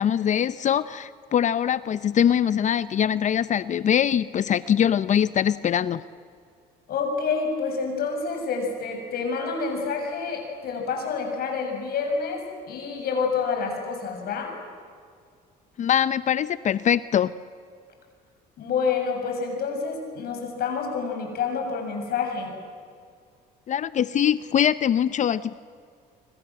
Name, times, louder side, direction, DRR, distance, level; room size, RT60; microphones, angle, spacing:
voice 1, 0.0-6.0 15.8-17.3 23.7-25.5, left 9 dB, 45° left, 16 dB, 0.7 m, -22 dB
voice 2, 6.9-14.5 18.6-22.6, left 5 dB, 65° left, 3 dB, 7.4 m, -28 dB
28.5 x 24.5 x 7.7 m, 2.2 s
cardioid pair, 110°, 17 cm